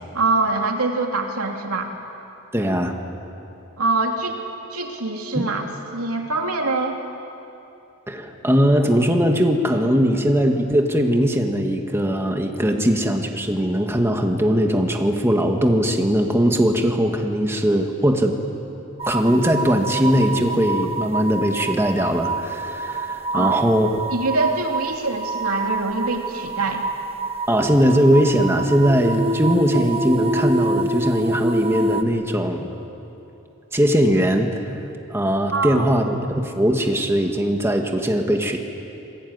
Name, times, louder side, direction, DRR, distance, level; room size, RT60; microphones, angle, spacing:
voice 1, 0.1-1.9 3.8-4.4 4.7-5.7 5.9-7.0 23.3-23.6 24.1-26.8 35.5-35.9, right 3 dB, 80° right, 2 dB, 2.8 m, -24 dB
voice 2, 2.5-2.9 5.4-5.5 8.1-18.3 19.1-23.9 27.5-32.7 33.7-34.8 35.1-38.6, equal, 10° right, 3 dB, 1.7 m, -20 dB
sound 1, 19.0-32.0, right 2 dB, 25° right, 1.2 m, -26 dB
27.0 x 20.0 x 9.6 m, 2.9 s
head